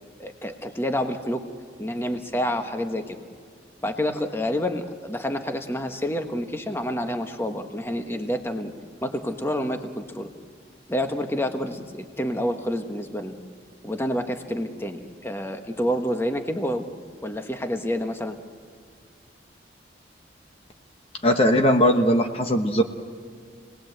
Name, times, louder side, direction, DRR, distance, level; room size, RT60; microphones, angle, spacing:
voice 1, 0.2-1.4 1.8-3.2 3.8-8.7 9.0-10.3 10.9-13.3 13.8-18.4, equal, 15° left, 5 dB, 1.3 m, -28 dB
voice 2, 21.2-22.8, equal, 30° left, 4 dB, 1.1 m, -19 dB
28.5 x 20.0 x 7.9 m, 2.1 s
head